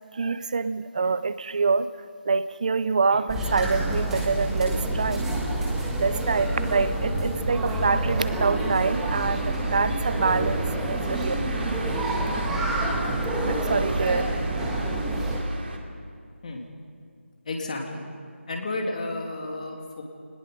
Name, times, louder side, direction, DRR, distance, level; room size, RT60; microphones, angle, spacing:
voice 1, 0.1-1.9 2.3-5.2 6.0-11.3 13.4-14.2, right 4 dB, 35° right, 15 dB, 0.6 m, -26 dB
sound 1, 3.3-15.4, right 2 dB, 5° right, 1.5 m, -27 dB
sound 2, 8.8-15.8, right 2 dB, 50° right, 2.8 m, -36 dB
voice 2, 17.4-18.0 18.5-20.0, left 2 dB, 35° left, 1 dB, 2.8 m, -32 dB
29.0 x 19.5 x 5.3 m, 2.3 s
figure-of-eight pair, 170°, 7 cm